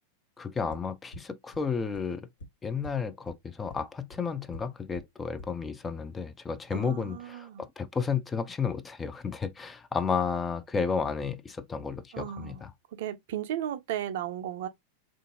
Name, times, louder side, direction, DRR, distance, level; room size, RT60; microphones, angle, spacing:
voice 1, 0.4-2.3 2.6-12.7, left 5 dB, 15° left, 0.4 m, -32 dB
sound 1, 0.7-0.8 1.1-1.2 1.5-1.6 1.9-2.0 2.4-2.5 2.8-2.9 3.3-3.4 3.7-3.8 4.1-4.2 4.5-4.6 4.9-5.0 5.4-5.5, left 1 dB, 65° left, 1.1 m, -44 dB
voice 2, 6.7-7.6 12.1-12.6 13.0-14.7, right 11 dB, 55° right, 0.5 m, -35 dB
3.6 x 2.5 x 2.6 m
figure-of-eight pair, 90°, 0 cm